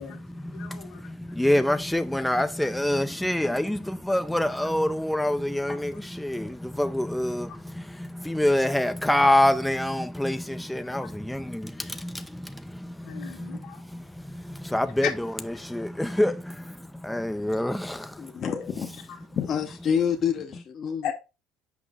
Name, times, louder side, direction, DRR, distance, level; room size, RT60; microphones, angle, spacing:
voice 1, 0.0-1.1 4.1-4.2 4.6-4.7 5.7-5.8 6.4-6.5 7.5-7.6 11.0-11.1 13.0-13.8 15.0-15.1 15.5-15.7 19.1-19.3 21.0-21.1, left 9 dB, 75° left, 1.8 m, -36 dB
voice 2, 0.5-15.1 15.6-18.4, left 1 dB, 5° left, 0.5 m, -26 dB
voice 3, 18.2-18.9 19.4-21.0, left 7 dB, 45° left, 0.8 m, -27 dB
6.1 x 5.1 x 3.5 m
supercardioid pair, 95°, 0 cm